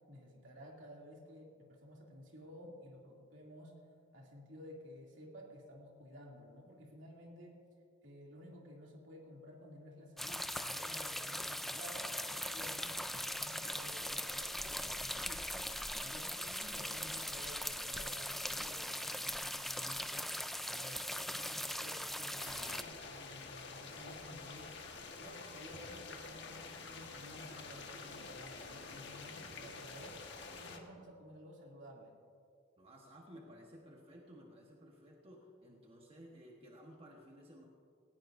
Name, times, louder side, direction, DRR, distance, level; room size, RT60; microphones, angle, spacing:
voice 1, 0.1-3.7 4.1-7.6 8.0-15.4 16.0-20.4 20.6-24.7 25.2-30.2 30.5-32.1, equal, 70° right, -1 dB, 2.7 m, -54 dB
sound 1, 10.2-22.8, left 1 dB, ahead, 0.4 m, -40 dB
sound 2, 22.4-30.8, left 4 dB, 60° left, 1.4 m, -48 dB
voice 2, 32.8-37.6, equal, 30° right, -1 dB, 1.2 m, -56 dB
18.0 x 17.5 x 2.6 m, 2.3 s
head